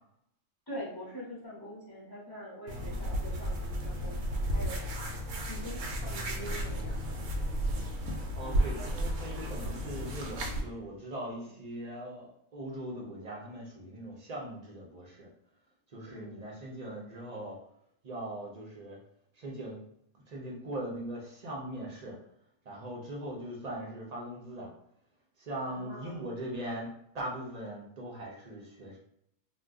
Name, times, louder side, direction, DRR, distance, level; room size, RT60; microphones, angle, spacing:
voice 1, 0.7-5.0 5.5-7.1 16.0-16.3 25.6-26.2, equal, 20° left, -7 dB, 0.7 m, -44 dB
sound 1, 2.7-10.6, equal, 80° right, 0.9 m, -33 dB
voice 2, 8.3-15.3 15.9-17.6 18.0-19.0 19.4-19.8 20.3-22.1 22.7-24.7 25.4-29.0, right 1 dB, 45° right, -2 dB, 0.5 m, -40 dB
2.5 x 2.2 x 3.5 m, 0.72 s
omnidirectional pair, 1.3 m